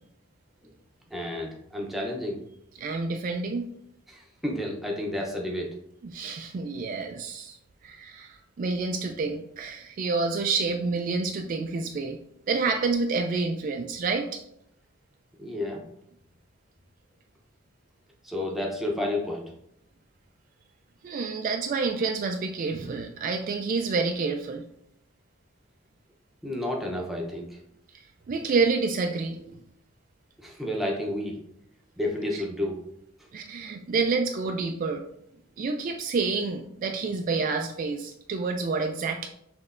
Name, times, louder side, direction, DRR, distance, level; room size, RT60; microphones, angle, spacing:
voice 1, 1.1-2.5 4.1-5.8 15.4-15.9 18.2-19.5 26.4-27.6 30.4-31.4 32.0-32.8, left 1 dB, ahead, -1 dB, 0.7 m, -31 dB
voice 2, 2.8-3.7 6.0-7.6 7.8-12.2 12.5-14.4 21.0-24.6 28.3-29.6 33.3-35.1 35.6-39.3, right 4 dB, 40° right, 4 dB, 0.3 m, -28 dB
5.9 x 3.1 x 2.5 m, 0.74 s
head